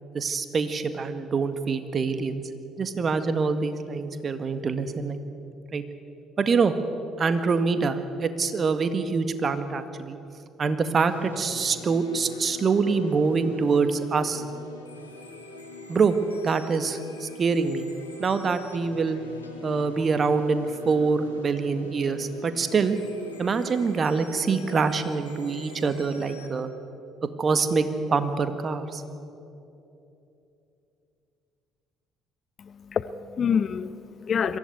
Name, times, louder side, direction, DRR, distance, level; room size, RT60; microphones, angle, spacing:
voice 1, 0.1-2.4 2.8-5.2 5.7-5.8 6.4-6.7 7.2-10.2 10.6-14.4 15.9-16.2 16.4-17.9 18.2-19.2 19.6-23.0 23.4-26.7 27.4-29.0, right 4 dB, 40° right, 1.7 m, -25 dB
sound 1, 11.0-26.5, left 1 dB, 90° left, 1.9 m, -44 dB
voice 2, 32.6-34.6, left 7 dB, 45° left, 0.8 m, -27 dB
22.5 x 15.0 x 9.5 m
figure-of-eight pair, 50°, 0 cm